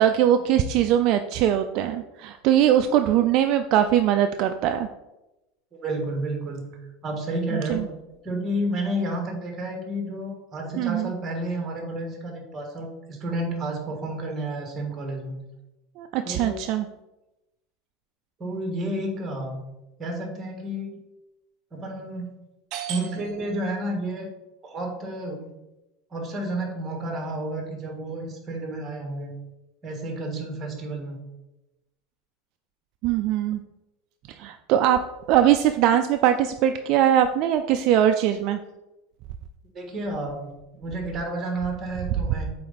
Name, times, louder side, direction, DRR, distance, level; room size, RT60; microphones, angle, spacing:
voice 1, 0.0-4.9 7.5-7.9 10.8-11.1 16.0-16.9 22.7-23.0 33.0-33.6 34.3-35.0 35.3-38.6, right 10 dB, 45° right, 7 dB, 0.4 m, -21 dB
voice 2, 5.7-6.7 7.0-7.9 8.2-15.4 16.2-16.6 18.4-19.6 20.0-21.0 21.7-22.3 22.9-24.3 24.6-25.5 26.1-29.3 29.8-31.2 39.7-42.5, right 1 dB, 20° right, 2 dB, 1.6 m, -31 dB
7.5 x 4.2 x 4.1 m, 0.98 s
supercardioid pair, 150°, 0 cm